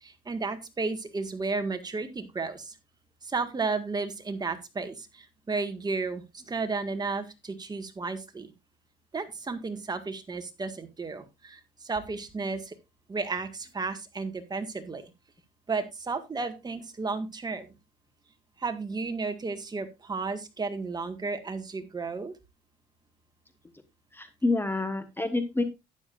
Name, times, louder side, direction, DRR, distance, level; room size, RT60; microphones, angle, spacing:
voice 1, 0.0-2.8 3.2-8.5 9.1-12.7 13.1-15.0 15.7-17.7 18.6-22.3, right 4 dB, 25° right, 7 dB, 1.8 m, -33 dB
voice 2, 24.1-25.6, left 2 dB, 10° left, 10 dB, 1.2 m, -28 dB
12.5 x 9.6 x 2.5 m, 0.23 s
cardioid pair, 110°, 17 cm